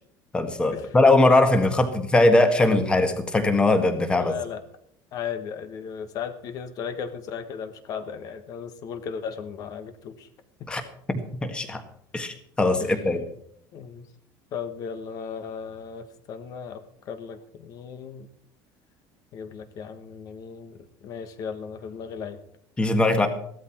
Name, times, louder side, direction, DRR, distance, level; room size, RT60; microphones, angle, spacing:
voice 1, 0.3-4.3 10.7-10.8 11.1-11.8 12.1-13.2 22.8-23.3, left 2 dB, 10° left, 7 dB, 1.6 m, -20 dB
voice 2, 4.2-4.6 5.1-10.3 12.8-13.0 13.7-14.1 14.5-18.3 19.3-22.4, left 7 dB, 40° left, 9 dB, 1.4 m, -36 dB
15.5 x 12.5 x 4.5 m, 0.68 s
cardioid pair, 180°, 9 cm